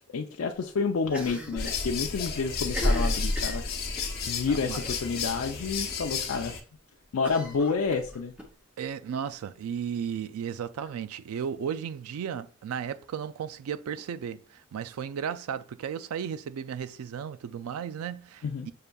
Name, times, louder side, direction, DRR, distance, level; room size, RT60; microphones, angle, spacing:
voice 1, 0.0-3.7 4.3-6.5 7.1-8.3 18.4-18.7, left 5 dB, 70° left, 0.4 m, -29 dB
Cough, 1.1-1.9 2.1-2.2 2.6-4.2 4.8-5.1 5.5-5.6 5.9-6.0 7.2-8.5, left 1 dB, 5° right, 0.7 m, -39 dB
sound 1, 1.6-6.6, left 3 dB, 45° left, 0.8 m, -30 dB
voice 2, 4.5-4.8 8.8-18.7, right 8 dB, 85° right, 0.3 m, -35 dB
6.5 x 2.5 x 2.3 m
head